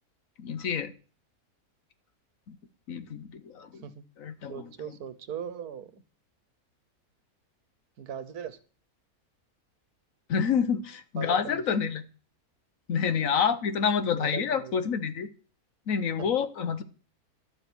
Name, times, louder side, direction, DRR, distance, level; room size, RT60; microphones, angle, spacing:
voice 1, 0.4-0.9 2.5-2.6 2.9-3.8 4.2-4.5 10.3-12.0 12.9-15.3 15.9-16.8, left 7 dB, 65° left, 11 dB, 1.3 m, -28 dB
voice 2, 4.5-6.0 8.0-8.6 11.2-11.6 14.1-14.7 16.2-16.3, right 8 dB, 85° right, 12 dB, 1.5 m, -39 dB
11.5 x 7.1 x 6.0 m, 0.38 s
omnidirectional pair, 1.6 m